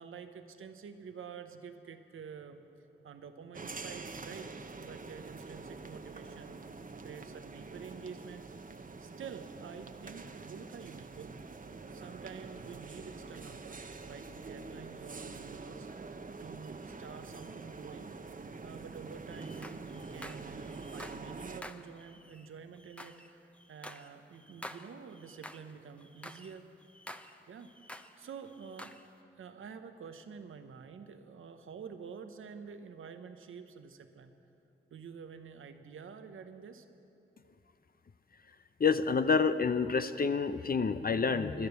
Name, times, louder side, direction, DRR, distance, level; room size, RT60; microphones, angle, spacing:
voice 1, 0.0-2.6 3.0-6.6 7.0-8.5 9.0-11.4 11.9-15.9 16.4-18.1 18.6-26.6 27.5-27.7 28.2-29.0 29.4-34.3 34.9-36.9, right 6 dB, 85° right, 8 dB, 0.9 m, -48 dB
sound 1, 3.5-21.6, right 4 dB, 40° right, 0.9 m, -46 dB
sound 2, 19.3-21.3 21.6-25.7 26.0-28.2 28.5-29.1, equal, 5° left, 0.8 m, -50 dB
voice 2, 38.8-41.7, left 5 dB, 45° left, 11 dB, 0.6 m, -28 dB
16.5 x 11.5 x 7.0 m, 2.9 s
cardioid pair, 45°, 20 cm